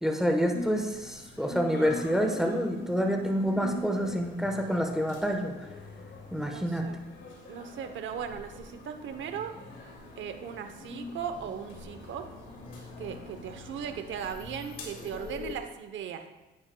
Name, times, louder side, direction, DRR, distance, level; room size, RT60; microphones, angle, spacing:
voice 1, 0.0-5.5 6.3-6.8, equal, ahead, 3 dB, 1.1 m, -28 dB
sound 1, 0.5-15.5, left 2 dB, 70° left, 2.0 m, -43 dB
voice 2, 6.5-7.0 7.5-9.6 10.2-12.3 13.0-16.2, right 8 dB, 70° right, 8 dB, 0.8 m, -38 dB
9.6 x 9.6 x 2.2 m, 1.0 s
cardioid pair, 90°, 20 cm